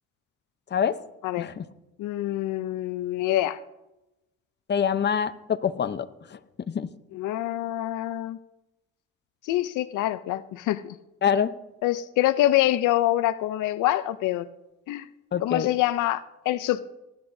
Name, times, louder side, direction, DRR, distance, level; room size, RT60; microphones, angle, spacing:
voice 1, 2.0-3.6 7.1-8.4 9.4-11.0 11.8-14.4 14.9-15.1 15.4-16.8, left 14 dB, 90° left, 14 dB, 0.6 m, -25 dB
voice 2, 4.7-6.1 6.3-6.4 6.7-6.9 11.2-11.5 15.3-15.7, left 7 dB, 35° left, 11 dB, 0.8 m, -25 dB
19.0 x 10.5 x 2.7 m, 0.96 s
cardioid pair, 90°, 30 cm